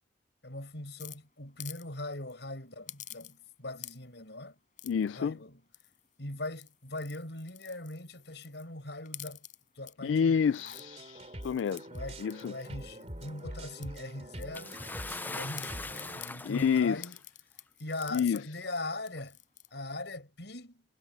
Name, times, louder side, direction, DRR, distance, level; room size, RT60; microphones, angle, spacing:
voice 1, 0.4-4.6 5.0-5.6 6.2-9.4 9.8-10.7 11.9-14.8 15.2-17.2 17.8-19.4 19.7-20.8, left 2 dB, 70° left, 5.7 m, -41 dB
sound 1, 1.0-1.9 2.1-2.3 2.9-3.5 3.8-4.2 4.8-5.1 5.7-6.1 6.5-8.7 9.0-9.9 10.4-10.8 11.4-13.4 13.8-15.3 15.6-16.4 17.0-18.4 18.8-18.9 19.1-19.7, left 12 dB, 45° left, 4.8 m, -49 dB
voice 2, 4.8-5.4 10.0-11.9 12.2-12.5 16.4-17.0 18.1-18.5, left 7 dB, 90° left, 0.3 m, -29 dB
sound 2, 10.7-16.2, right 1 dB, 35° right, 3.4 m, -45 dB
Bathtub (filling or washing) / Splash splatter, 14.5-17.1 18.1-18.2 19.2-19.3, left 3 dB, 10° left, 0.4 m, -41 dB
head